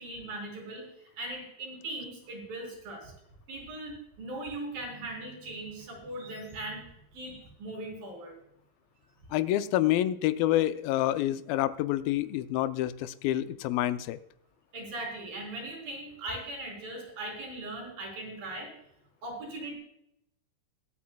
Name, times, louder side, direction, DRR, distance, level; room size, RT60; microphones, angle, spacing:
voice 1, 0.0-3.1 3.5-6.8 7.1-8.4 14.7-18.7 19.2-19.8, right 2 dB, 80° right, 2 dB, 5.4 m, -39 dB
voice 2, 9.3-14.2, left 13 dB, 85° left, 12 dB, 2.4 m, -27 dB
22.0 x 8.4 x 2.2 m, 0.78 s
omnidirectional pair, 4.1 m